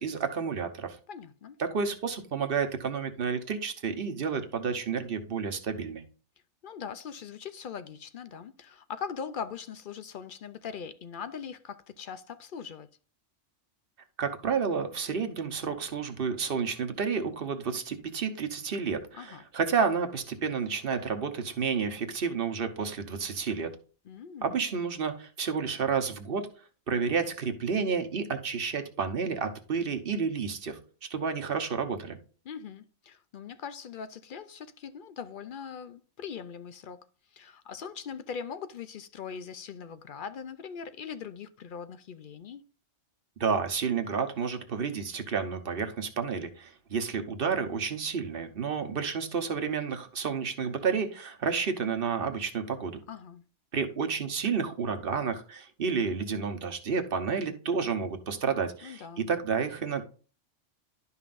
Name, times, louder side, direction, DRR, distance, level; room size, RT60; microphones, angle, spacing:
voice 1, 0.0-1.0 1.6-6.0 14.2-23.7 24.4-26.5 26.9-30.8 31.1-32.2 43.4-53.0 53.7-60.0, right 5 dB, 50° right, 1.1 m, -30 dB
voice 2, 1.1-1.6 6.6-12.9 19.1-19.4 24.1-24.5 32.4-37.1 37.3-42.6 53.1-53.4 58.8-59.3, left 7 dB, 60° left, 0.6 m, -41 dB
11.5 x 5.6 x 2.5 m
omnidirectional pair, 1.2 m